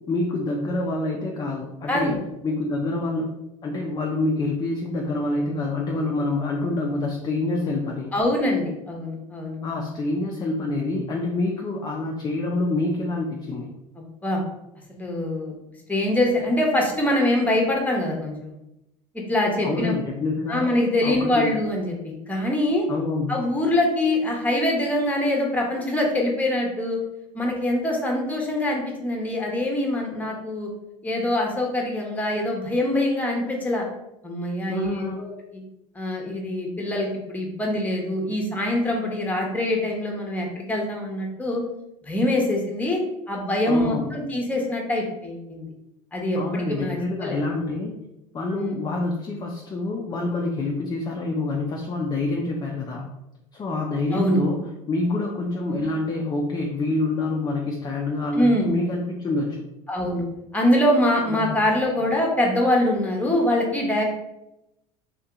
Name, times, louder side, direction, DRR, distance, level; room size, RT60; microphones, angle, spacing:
voice 1, 0.1-2.2 2.4-8.1 9.6-13.7 19.6-20.6 21.0-21.5 22.9-23.3 34.7-35.2 43.7-44.1 46.4-48.0 48.3-53.1 53.5-54.6 54.9-59.6 61.3-61.6, left 2 dB, 25° left, 0 dB, 0.5 m, -27 dB
voice 2, 1.9-2.2 8.1-9.6 14.0-14.4 15.0-15.5 15.9-18.5 19.1-19.9 20.5-22.9 23.3-27.0 27.3-30.7 31.0-33.9 34.2-34.9 35.2-35.3 35.9-41.6 42.1-43.0 43.3-45.7 46.1-47.6 48.6-48.9 54.1-54.4 55.7-55.8 58.3-58.7 59.9-60.2 60.5-64.0, left 1 dB, 10° left, 0 dB, 1.0 m, -24 dB
2.9 x 2.7 x 3.5 m, 0.88 s
hypercardioid pair, 85°, 17 cm